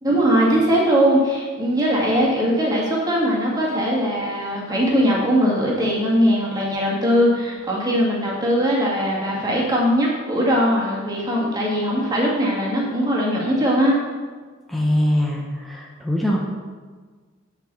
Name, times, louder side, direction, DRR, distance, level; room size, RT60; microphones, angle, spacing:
voice 1, 0.0-14.0, equal, 20° right, -4 dB, 1.9 m, -20 dB
voice 2, 14.7-16.4, equal, ahead, -2 dB, 0.8 m, -22 dB
6.7 x 4.8 x 6.7 m, 1.5 s
head